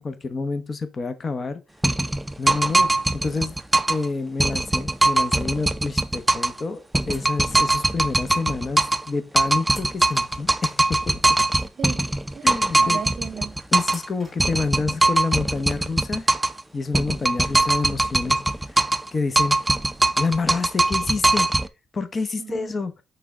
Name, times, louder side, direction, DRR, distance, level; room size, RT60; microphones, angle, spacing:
voice 1, 0.0-1.6 2.4-3.6 3.9-11.2 12.4-13.0 13.7-16.3 16.7-19.6 20.2-21.5 21.9-22.9, left 4 dB, 35° left, 0.7 m, -28 dB
sound 1, 1.8-4.1 4.4-6.6 6.9-9.1 9.4-14.1 14.4-16.6 16.9-19.1 19.4-21.7, right 2 dB, 10° right, 0.4 m, -21 dB
sound 2, 7.1-8.0 9.7-10.8 13.9-14.8, equal, 10° left, 1.9 m, -47 dB
voice 2, 11.6-12.1 12.3-13.6 22.4-22.7, right 7 dB, 55° right, 0.7 m, -37 dB
5.9 x 3.4 x 4.7 m
cardioid pair, 90°, 0 cm